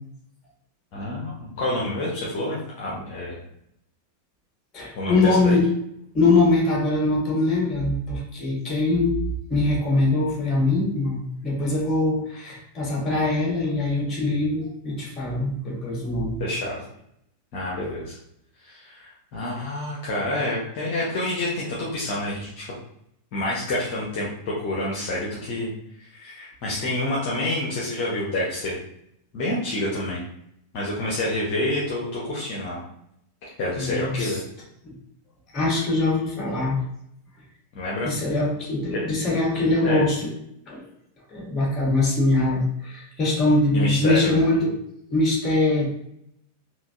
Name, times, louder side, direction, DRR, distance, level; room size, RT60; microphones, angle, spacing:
voice 1, 0.9-3.4 5.0-5.6 16.4-16.8 17.5-18.1 18.6-22.7 23.3-25.7 26.1-28.8 29.3-30.2 30.7-32.8 33.4-34.4 37.7-38.1 38.9-39.0 39.8-40.0 43.7-44.4, left 1 dB, 45° left, -5 dB, 0.9 m, -28 dB
voice 2, 4.7-5.7 6.1-16.4 33.8-34.4 34.8-35.0 35.5-36.8 38.0-40.3 40.7-40.8 41.3-44.7 45.1-45.9, left 2 dB, 25° left, -2 dB, 1.3 m, -22 dB
3.8 x 2.6 x 2.4 m, 0.74 s
figure-of-eight pair, 90°, 0 cm